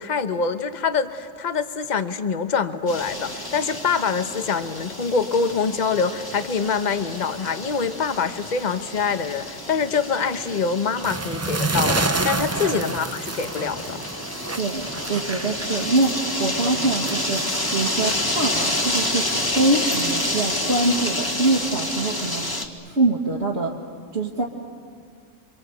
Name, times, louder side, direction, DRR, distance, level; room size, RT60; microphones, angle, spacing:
voice 1, 0.0-14.0, left 5 dB, 35° left, 10 dB, 1.1 m, -25 dB
sound 1, 2.9-22.6, left 1 dB, 15° left, 1.9 m, -29 dB
sound 2, 11.0-16.2 16.5-20.2, right 2 dB, 20° right, 0.4 m, -29 dB
voice 2, 14.5-19.3 19.5-23.7 24.1-24.4, right 2 dB, 55° right, -3 dB, 2.1 m, -24 dB
28.5 x 25.0 x 8.1 m, 2.2 s
omnidirectional pair, 1.3 m